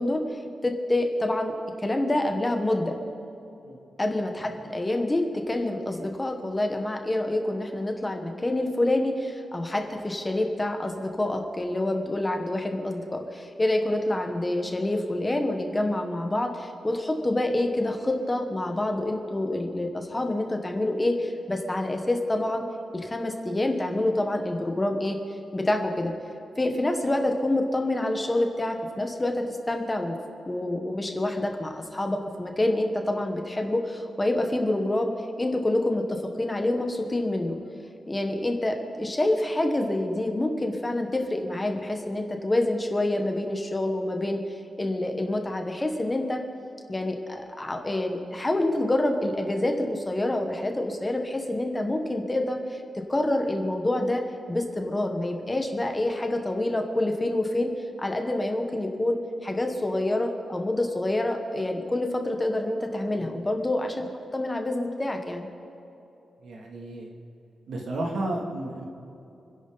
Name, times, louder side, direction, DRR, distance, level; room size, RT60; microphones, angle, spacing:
voice 1, 0.0-1.5 1.8-3.0 4.0-22.6 22.9-25.2 25.5-26.1 26.6-30.2 30.5-35.1 35.4-37.6 38.1-44.4 44.8-46.4 46.9-54.2 54.5-57.7 58.0-65.5, left 1 dB, 15° left, 3 dB, 1.3 m, -27 dB
voice 2, 66.4-67.1 67.7-68.8, right 1 dB, 80° right, 0 dB, 2.7 m, -32 dB
28.5 x 11.0 x 4.1 m, 2.8 s
wide cardioid pair, 180°, 0 cm